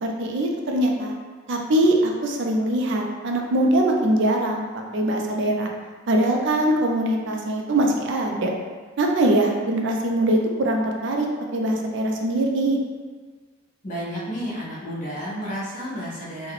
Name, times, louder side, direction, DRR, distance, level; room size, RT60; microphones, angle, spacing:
voice 1, 0.0-1.1 1.5-4.7 4.9-5.7 6.1-8.5 9.0-11.3 11.5-12.8, right 1 dB, 65° right, 1 dB, 0.4 m, -22 dB
voice 2, 13.8-16.5, equal, 40° left, -7 dB, 0.9 m, -31 dB
3.1 x 2.2 x 3.7 m, 1.5 s
head